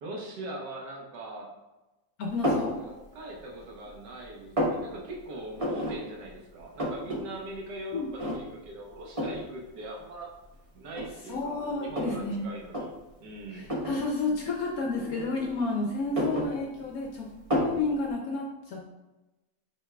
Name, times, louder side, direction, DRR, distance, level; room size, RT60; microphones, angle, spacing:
voice 1, 0.0-1.5 2.8-10.3 10.7-12.9 13.2-13.7, right 1 dB, 70° right, -1 dB, 1.5 m, -41 dB
voice 2, 2.2-2.8 7.9-8.1 11.3-12.5 13.5-18.8, left 3 dB, 70° left, 0 dB, 0.9 m, -31 dB
sound 1, 2.4-2.7 3.3-3.9 4.2-4.8 5.6-6.0 6.3-6.4 6.6-7.2 7.5-7.6 8.2-8.6 9.2-9.4 10.3-10.4 10.9-12.2 12.6-12.8 13.6-14.0 15.0-15.6 16.0-17.0 17.5-17.8, equal, 55° right, 0.3 m, -30 dB
7.5 x 3.2 x 2.2 m, 1.1 s
omnidirectional pair, 2.0 m